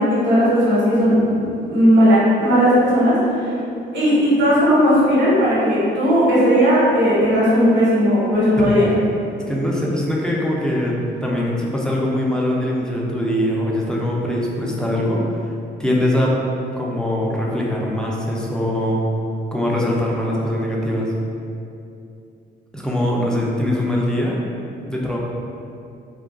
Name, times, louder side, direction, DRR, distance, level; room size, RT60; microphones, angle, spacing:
voice 1, 0.0-3.3 3.9-8.8, equal, 60° right, -9 dB, 1.2 m, -16 dB
voice 2, 8.6-9.0 9.5-15.2 15.8-16.3 16.7-19.0 19.5-21.1 22.7-24.4 24.8-25.2, left 1 dB, 5° left, -4 dB, 0.4 m, -22 dB
2.3 x 2.2 x 3.6 m, 2.6 s
cardioid pair, 90°, 20 cm